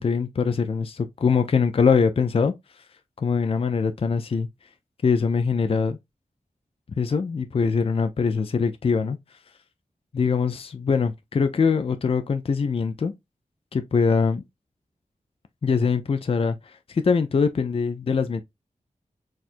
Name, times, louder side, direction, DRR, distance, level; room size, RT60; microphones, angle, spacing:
voice 1, 0.0-2.5 3.2-4.5 5.0-6.0 7.0-9.2 10.1-13.1 13.7-14.4 15.6-18.4, left 5 dB, 40° left, 0.4 m, -23 dB
4.2 x 2.4 x 2.5 m
wide cardioid pair, 80°, 14 cm